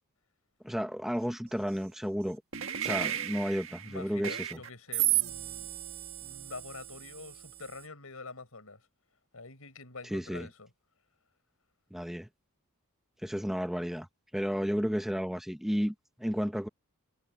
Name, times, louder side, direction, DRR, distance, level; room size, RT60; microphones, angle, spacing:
voice 1, 0.6-2.4 2.8-4.5 10.1-10.5 11.9-12.3 13.2-14.1 14.3-16.7, equal, ahead, 0.9 m, -32 dB
sound 1, 2.5-7.8, right 12 dB, 60° right, 1.6 m, -34 dB
voice 2, 2.8-3.1 3.8-5.7 6.2-8.9 9.3-10.7, left 3 dB, 75° left, 5.5 m, -46 dB
head